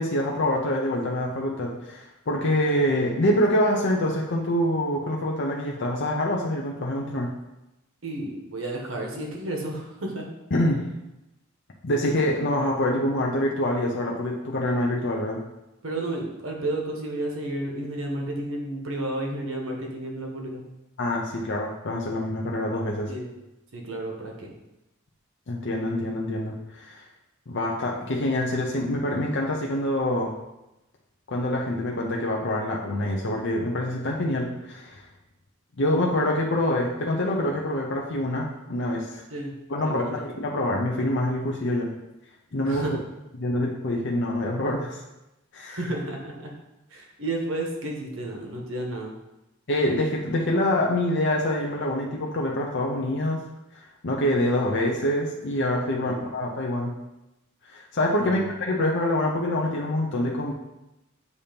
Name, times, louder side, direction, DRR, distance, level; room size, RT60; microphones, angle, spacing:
voice 1, 0.0-7.3 10.5-10.8 11.8-15.4 21.0-23.1 25.5-27.0 27.5-30.3 31.3-35.0 35.8-39.2 39.7-41.9 42.5-42.9 43.4-45.0 45.5-45.8 49.7-53.4 54.0-56.9 57.7-60.5, left 1 dB, 60° left, -1 dB, 0.7 m, -25 dB
voice 2, 8.0-10.2 15.8-20.6 23.1-23.3 23.7-24.5 39.3-39.5 39.8-40.1 42.6-43.0 45.7-46.5 46.9-49.1 55.9-56.2 58.2-58.5, right 1 dB, 70° right, 1 dB, 1.3 m, -32 dB
8.2 x 2.9 x 5.2 m, 0.95 s
head